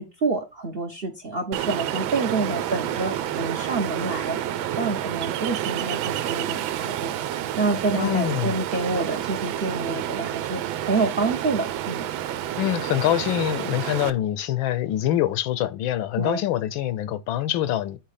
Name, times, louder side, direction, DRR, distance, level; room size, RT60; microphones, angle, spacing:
voice 1, 0.0-4.4 4.7-12.0 16.2-16.4, right 3 dB, 50° right, 0.7 m, -28 dB
Ocean, 1.5-14.1, right 12 dB, 80° right, 1.4 m, -29 dB
voice 2, 7.9-8.5 12.6-18.0, left 12 dB, 85° left, 1.5 m, -25 dB
8.3 x 3.1 x 4.9 m
omnidirectional pair, 2.2 m